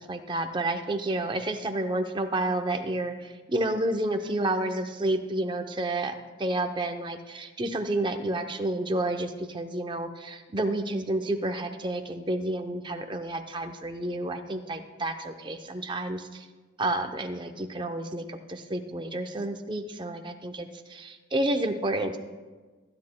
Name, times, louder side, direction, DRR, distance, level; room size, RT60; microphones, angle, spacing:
voice 1, 0.0-16.5 16.8-22.2, right 1 dB, 20° right, 6 dB, 0.6 m, -30 dB
25.5 x 9.6 x 2.2 m, 1.4 s
head